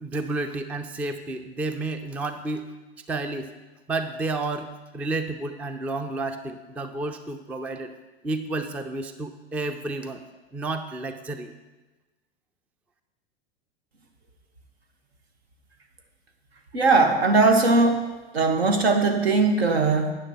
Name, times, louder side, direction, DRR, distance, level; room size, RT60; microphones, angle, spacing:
voice 1, 0.0-2.7 3.1-3.5 3.9-7.9 8.2-10.2 10.5-11.5, right 2 dB, 5° right, 9 dB, 0.3 m, -31 dB
voice 2, 16.7-18.1 18.3-20.1, right 3 dB, 75° right, 5 dB, 1.5 m, -19 dB
13.0 x 9.2 x 3.0 m, 1.2 s
hypercardioid pair, 100°, 31 cm